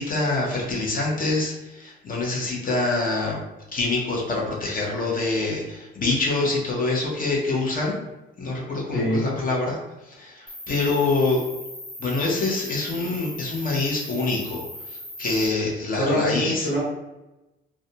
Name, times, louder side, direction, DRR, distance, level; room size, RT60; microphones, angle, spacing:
voice 1, 0.0-3.4 3.7-8.0 8.4-9.8 10.1-11.4 12.0-14.6 15.2-16.7, left 3 dB, 45° left, -2 dB, 0.7 m, -25 dB
voice 2, 8.9-9.3 15.9-16.8, equal, 70° left, -6 dB, 1.4 m, -24 dB
Cricket, 10.5-15.5, left 1 dB, 30° left, 1.1 m, -39 dB
2.4 x 2.2 x 2.7 m, 0.99 s
cardioid pair, 90°, 20 cm